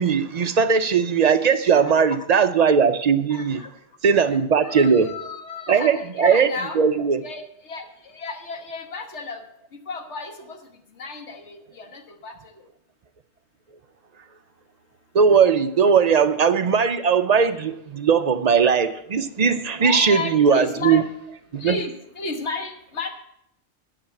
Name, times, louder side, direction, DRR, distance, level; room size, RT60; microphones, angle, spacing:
voice 1, 0.0-3.6 4.0-5.1 5.7-6.5 6.7-7.2 15.1-21.0 21.5-21.8, right 6 dB, 50° right, 9 dB, 0.5 m, -19 dB
voice 2, 3.3-3.7 4.6-6.8 7.2-9.4 9.9-10.6 11.0-12.6 19.8-21.0 21.6-23.1, left 3 dB, 65° left, 5 dB, 1.5 m, -33 dB
10.0 x 6.1 x 7.7 m, 0.75 s
omnidirectional pair, 1.3 m